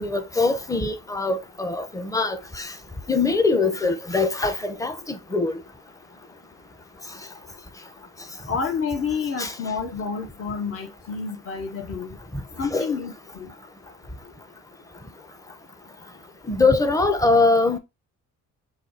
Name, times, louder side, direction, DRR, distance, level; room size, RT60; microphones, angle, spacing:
voice 1, 0.0-2.7 3.1-5.6 9.4-9.5 12.7-12.9 16.5-17.8, left 3 dB, 10° left, 0.7 m, -22 dB
voice 2, 8.5-12.2 12.6-13.5, left 5 dB, 50° left, 0.9 m, -29 dB
4.0 x 2.3 x 4.1 m
cardioid pair, 90°, 30 cm